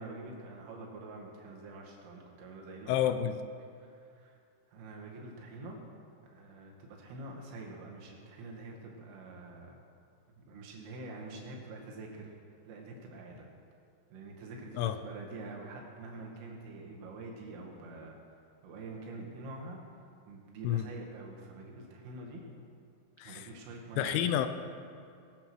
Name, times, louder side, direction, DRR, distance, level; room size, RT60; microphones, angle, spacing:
voice 1, 0.0-3.1 3.8-4.4 4.7-5.8 6.2-9.8 10.3-12.3 12.7-13.5 14.1-18.2 18.6-19.8 20.3-22.4 23.2-24.2, right 2 dB, 85° right, -1 dB, 4.6 m, -46 dB
voice 2, 2.9-3.4 14.8-15.0 20.6-20.9 23.2-23.5 24.0-24.5, left 10 dB, 80° left, 9 dB, 2.9 m, -29 dB
21.0 x 8.2 x 6.2 m, 2.4 s
omnidirectional pair, 5.7 m